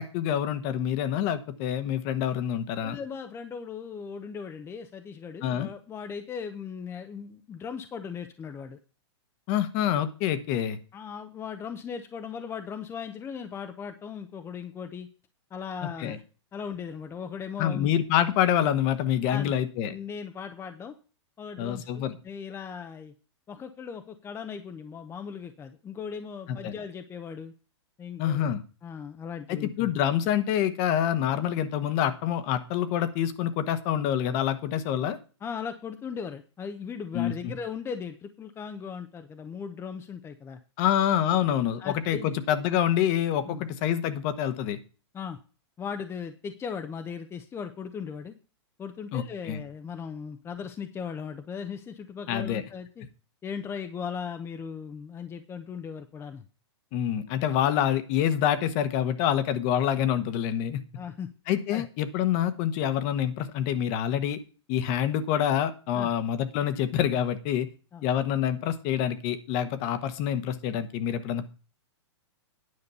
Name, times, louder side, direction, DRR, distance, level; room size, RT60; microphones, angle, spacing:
voice 1, 0.0-3.0 5.4-5.7 9.5-10.8 16.0-16.2 17.6-19.9 21.6-22.2 26.5-26.7 28.2-28.6 29.5-35.2 37.1-37.5 40.8-44.8 49.1-49.6 52.3-52.6 56.9-60.8 61.5-64.4 64.7-67.7 68.0-71.5, left 10 dB, 40° left, 11 dB, 1.2 m, -26 dB
voice 2, 2.8-8.8 10.9-15.1 15.5-16.2 16.5-17.9 19.3-19.6 19.9-20.9 21.4-23.1 23.5-27.5 28.0-28.5 28.8-29.9 35.4-40.6 41.8-42.3 43.5-43.6 45.1-45.4 45.8-48.3 48.8-53.0 53.4-56.4 60.9-61.3 61.7-61.9 65.9-66.1 67.9-68.0, left 6 dB, 15° left, 7 dB, 0.7 m, -38 dB
9.8 x 5.2 x 6.8 m, 0.35 s
hypercardioid pair, 120°, 15 cm